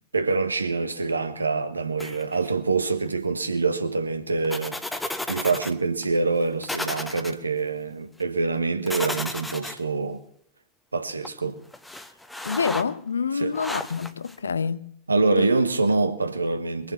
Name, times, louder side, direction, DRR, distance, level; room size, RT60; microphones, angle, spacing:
voice 1, 0.1-4.8 5.3-10.2 10.9-11.6 13.3-13.6 15.1-16.9, right 3 dB, 80° right, 1.4 m, -25 dB
sound 1, 2.0-2.5 4.4-5.7 6.0-6.1 6.6-7.3 8.9-9.8 11.2-11.3 11.7-12.8 13.5-14.4, left 1 dB, 5° left, 1.1 m, -33 dB
voice 2, 12.4-14.9 15.4-15.5, left 5 dB, 75° left, 0.7 m, -27 dB
22.5 x 7.6 x 7.1 m
figure-of-eight pair, 90°, 0 cm